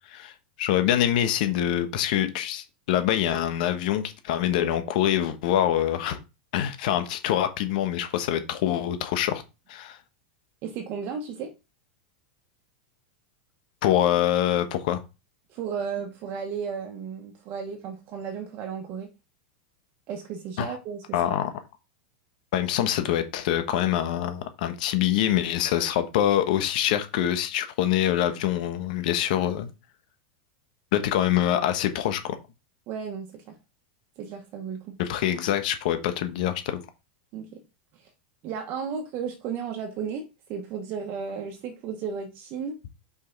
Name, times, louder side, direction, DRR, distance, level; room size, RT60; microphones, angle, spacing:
voice 1, 0.6-6.2 6.5-9.4 9.7-10.0 13.8-15.0 20.6-20.7 21.1-21.5 22.5-29.7 30.9-32.4 35.0-36.8, left 11 dB, 60° left, 1.2 m, -25 dB
voice 2, 10.6-11.5 15.5-19.1 20.1-21.0 32.9-33.6 34.2-35.0 37.3-37.6 38.4-42.8, right 6 dB, 40° right, 1.3 m, -34 dB
5.6 x 5.4 x 4.0 m
supercardioid pair, 145°, 5 cm